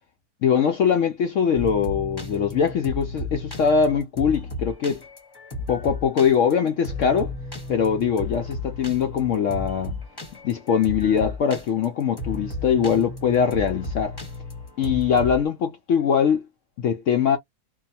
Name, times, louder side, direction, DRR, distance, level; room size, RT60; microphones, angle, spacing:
voice 1, 0.4-5.0 5.7-7.3 7.7-10.0 10.4-14.2 14.8-16.5 16.8-17.4, left 7 dB, 75° left, 0.7 m, -22 dB
sound 1, 1.5-15.4, left 2 dB, 20° left, 0.7 m, -34 dB
2.7 x 2.3 x 2.6 m
omnidirectional pair, 1.8 m